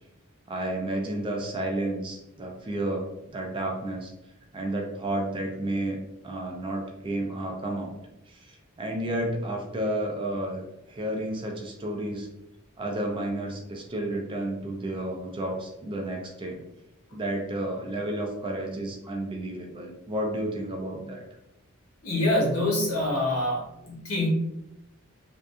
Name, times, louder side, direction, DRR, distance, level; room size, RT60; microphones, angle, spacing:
voice 1, 0.5-4.1 4.5-6.0 6.2-8.0 8.3-12.3 12.8-16.6 17.1-21.2, right 1 dB, 25° right, 1 dB, 0.4 m, -31 dB
voice 2, 22.0-24.3, left 1 dB, 80° left, -4 dB, 1.0 m, -25 dB
2.6 x 2.3 x 2.3 m, 0.87 s
head